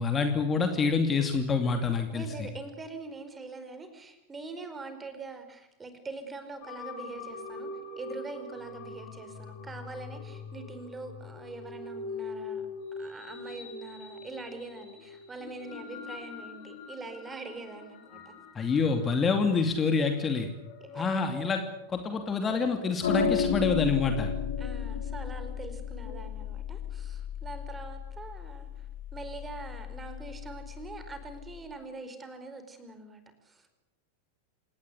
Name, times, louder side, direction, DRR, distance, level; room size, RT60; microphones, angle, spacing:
voice 1, 0.0-2.2 18.5-20.5 21.0-21.6 21.9-24.3, left 4 dB, 20° left, 6 dB, 2.6 m, -27 dB
voice 2, 2.1-7.7 7.9-12.7 13.0-18.7 20.8-21.1 24.6-33.8, right 3 dB, 15° right, 8 dB, 4.8 m, -43 dB
sound 1, 6.6-26.1, left 3 dB, 50° left, 6.1 m, -44 dB
sound 2, 23.0-31.6, left 6 dB, 65° left, 4.7 m, -34 dB
28.0 x 19.0 x 8.4 m, 0.82 s
figure-of-eight pair, 90°, 0 cm